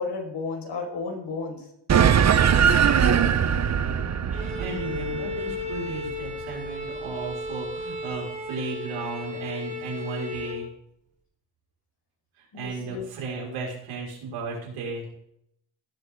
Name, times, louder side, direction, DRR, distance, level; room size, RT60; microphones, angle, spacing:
voice 1, 0.0-1.7 12.5-13.1, left 4 dB, 55° left, -2 dB, 5.6 m, -32 dB
sound 1, 1.9-6.7, right 8 dB, 35° right, 0.8 m, -21 dB
voice 2, 2.8-3.5 4.3-10.7 12.4-15.2, right 3 dB, 85° right, -3 dB, 5.5 m, -35 dB
Bowed string instrument, 4.3-10.7, left 3 dB, 15° right, 4.1 m, -35 dB
17.5 x 7.9 x 3.8 m, 0.74 s
cardioid pair, 105°, 48 cm